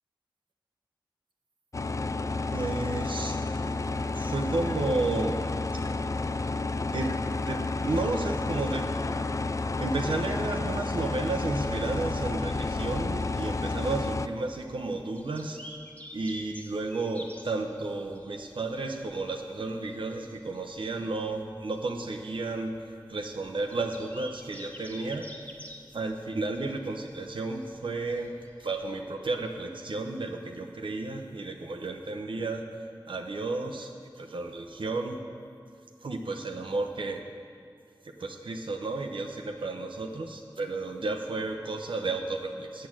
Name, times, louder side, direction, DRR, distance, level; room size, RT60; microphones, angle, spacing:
sound 1, 1.7-14.3, left 3 dB, 40° left, 0.3 m, -31 dB
voice 1, 2.5-3.4 4.1-5.4 6.9-7.2 7.5-8.9 9.8-15.6 16.1-22.8 23.1-25.3 25.9-32.6 33.1-33.9 34.2-35.2 36.0-37.2 38.2-42.9, right 3 dB, 85° right, 3 dB, 0.7 m, -32 dB
sound 2, 14.3-29.7, equal, 15° left, 1.3 m, -50 dB
8.3 x 7.6 x 7.4 m, 2.3 s
wide cardioid pair, 60°, 8 cm